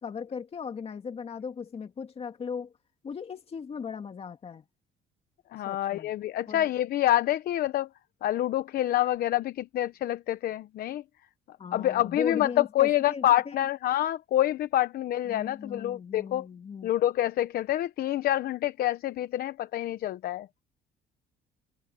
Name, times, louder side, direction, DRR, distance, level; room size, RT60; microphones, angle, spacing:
voice 1, 0.0-2.7 3.0-4.6 5.6-6.1 6.5-6.7 11.6-13.6 15.3-16.9, left 6 dB, 35° left, 2.2 m, -37 dB
voice 2, 5.5-7.9 8.2-11.0 11.5-16.5 16.8-20.5, left 13 dB, 60° left, 0.9 m, -27 dB
cardioid pair, 110°, 17 cm